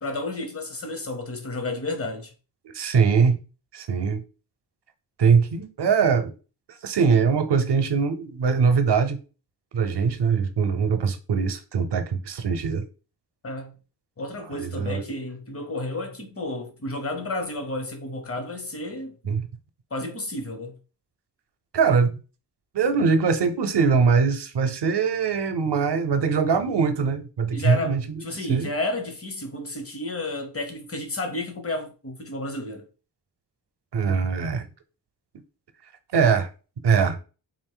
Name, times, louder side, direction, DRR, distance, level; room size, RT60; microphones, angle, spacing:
voice 1, 0.0-2.3 13.4-13.7 14.2-19.3 19.9-20.8 27.5-32.9, left 2 dB, 35° left, 0.9 m, -31 dB
voice 2, 2.7-3.4 3.7-4.2 5.2-6.3 6.8-9.2 9.7-12.8 14.6-15.0 19.2-19.5 21.7-22.2 22.7-28.7 33.9-34.6 36.1-36.5 36.8-37.2, right 5 dB, 75° right, 0.7 m, -22 dB
3.8 x 2.5 x 3.8 m
wide cardioid pair, 85°, 42 cm